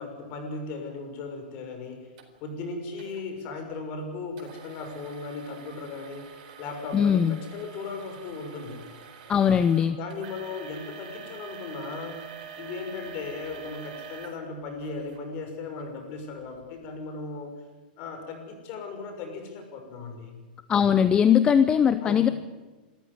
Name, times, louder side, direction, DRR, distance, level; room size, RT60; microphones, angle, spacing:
voice 1, 0.0-2.0 2.4-6.2 6.6-8.8 9.9-12.2 12.6-17.5 18.0-20.4 22.0-22.3, left 4 dB, 40° left, 5 dB, 6.2 m, -37 dB
sound 1, 2.2-2.3 3.0-3.2 4.4-15.2 15.8-15.9 16.5-16.6, right 7 dB, 55° right, 4.4 m, -45 dB
voice 2, 6.9-7.4 9.3-10.0 20.7-22.3, left 8 dB, 15° left, 12 dB, 0.7 m, -20 dB
27.0 x 14.0 x 9.7 m, 1.2 s
supercardioid pair, 150°, 5 cm